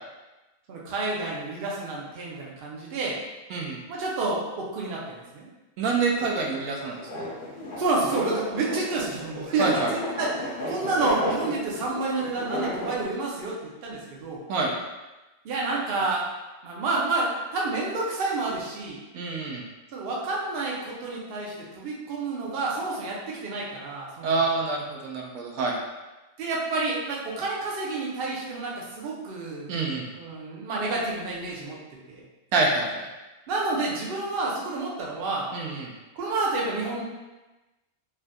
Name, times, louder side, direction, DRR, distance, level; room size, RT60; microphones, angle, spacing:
voice 1, 0.7-3.2 3.9-5.5 7.8-14.4 15.4-16.2 16.6-19.0 19.9-24.3 26.4-29.7 30.2-31.8 32.1-32.2 33.5-35.5 36.1-37.0, right 3 dB, 55° right, -4 dB, 0.7 m, -29 dB
voice 2, 5.8-7.3 9.6-9.9 14.5-14.7 19.1-19.6 24.2-25.8 29.7-30.1 32.5-32.9 35.5-35.9, right 3 dB, 90° right, 0 dB, 1.1 m, -26 dB
sound 1, 6.1-13.0, left 1 dB, 35° left, 0.9 m, -34 dB
3.4 x 2.5 x 2.2 m, 1.1 s
omnidirectional pair, 1.5 m